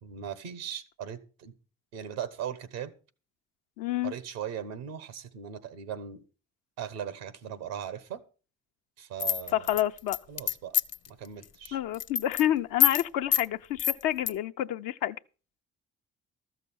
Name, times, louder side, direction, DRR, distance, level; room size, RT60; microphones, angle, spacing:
voice 1, 0.0-1.5 1.9-2.9 4.0-6.2 6.8-8.2 9.0-9.7 10.3-10.8 11.1-11.8, right 9 dB, 90° right, 1.2 m, -38 dB
voice 2, 3.8-4.1 9.5-10.2 11.7-15.2, left 12 dB, 80° left, 0.7 m, -29 dB
sound 1, 9.2-11.1 11.4-11.7 11.9-12.4 12.8-13.0 13.3-13.5 13.8-14.3, left 10 dB, 45° left, 0.7 m, -25 dB
13.5 x 6.8 x 7.0 m
hypercardioid pair, 50°, 34 cm